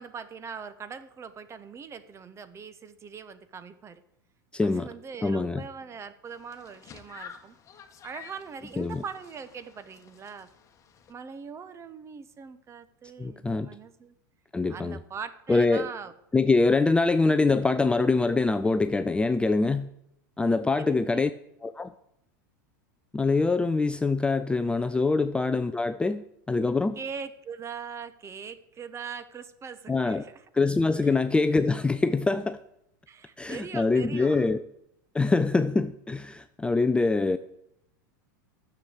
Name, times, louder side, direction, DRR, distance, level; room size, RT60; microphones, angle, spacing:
voice 1, 0.0-4.0 4.6-7.5 8.0-10.5 11.1-14.1 14.7-16.1 20.8-21.3 25.1-25.3 27.0-30.4 31.0-31.2 33.1-34.5, right 6 dB, 25° right, 13 dB, 1.0 m, -41 dB
voice 2, 4.5-4.9 5.2-5.6 8.8-9.0 13.2-13.7 14.5-15.0 15.5-15.9 16.3-19.9 20.4-21.3 21.6-21.9 23.1-27.0 29.9-30.2 30.5-32.6 33.4-34.6 35.1-37.4, left 3 dB, 10° left, 10 dB, 0.5 m, -24 dB
sound 1, 6.3-11.1, left 7 dB, 30° left, 1.4 m, -50 dB
10.0 x 7.1 x 7.9 m, 0.77 s
hypercardioid pair, 105°, 10 cm